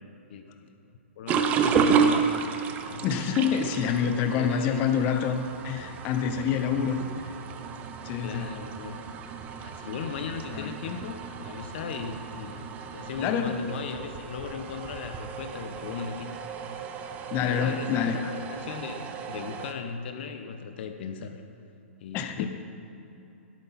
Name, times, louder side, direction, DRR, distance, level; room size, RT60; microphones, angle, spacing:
voice 1, 1.2-2.2 2.8-3.1 4.0-4.9 8.2-9.1 9.6-16.3 17.3-21.4 22.0-22.5, left 6 dB, 50° left, 7 dB, 0.9 m, -37 dB
sound 1, 1.3-19.7, right 6 dB, 20° right, 0.7 m, -32 dB
voice 2, 3.0-7.0 8.0-8.5 10.5-11.0 13.2-13.6 17.3-18.3 22.1-22.5, left 7 dB, 25° left, 7 dB, 0.7 m, -27 dB
17.0 x 8.1 x 4.2 m, 3.0 s
hypercardioid pair, 150°, 7 cm